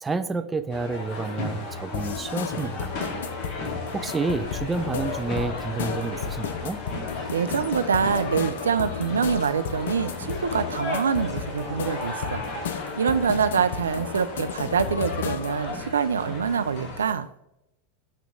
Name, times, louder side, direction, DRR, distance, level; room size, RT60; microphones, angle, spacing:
voice 1, 0.0-3.0 3.9-6.8, right 3 dB, 15° right, 9 dB, 0.6 m, -29 dB
sound 1, 0.7-17.1, left 2 dB, 50° left, 1.9 m, -35 dB
sound 2, 1.9-15.7, left 7 dB, 70° left, 0.6 m, -34 dB
voice 2, 7.3-12.4 13.0-17.3, right 6 dB, 85° right, 12 dB, 0.5 m, -25 dB
8.4 x 3.0 x 5.1 m, 0.83 s
hypercardioid pair, 95°, 0 cm